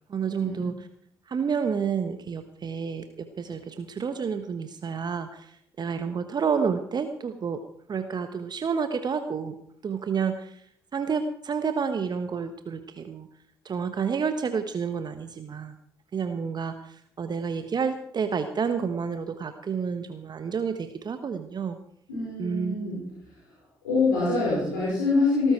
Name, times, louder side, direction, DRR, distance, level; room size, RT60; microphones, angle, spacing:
voice 1, 0.1-0.7 1.3-7.6 7.9-9.5 9.8-10.6 10.9-13.3 13.6-15.8 16.1-21.8 22.4-22.8, right 6 dB, 45° right, 9 dB, 1.2 m, -29 dB
voice 2, 22.1-23.0 23.8-25.5, left 3 dB, 85° left, -7 dB, 5.1 m, -25 dB
18.0 x 14.0 x 4.5 m, 0.66 s
figure-of-eight pair, 45°, 10 cm